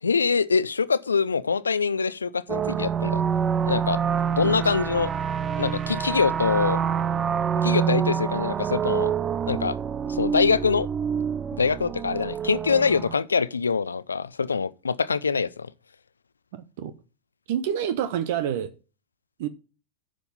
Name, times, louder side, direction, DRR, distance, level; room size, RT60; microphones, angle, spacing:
voice 1, 0.0-3.2 3.6-4.0 4.3-5.1 5.6-6.8 7.6-9.1 9.5-9.8 10.1-10.9 11.6-15.7, left 5 dB, 80° left, 0.4 m, -24 dB
sound 1, 2.5-13.2, right 7 dB, 25° right, 0.4 m, -26 dB
voice 2, 16.5-16.9 17.5-18.7 19.4-19.5, right 9 dB, 55° right, 0.8 m, -28 dB
10.0 x 5.3 x 5.5 m
figure-of-eight pair, 90°, 0 cm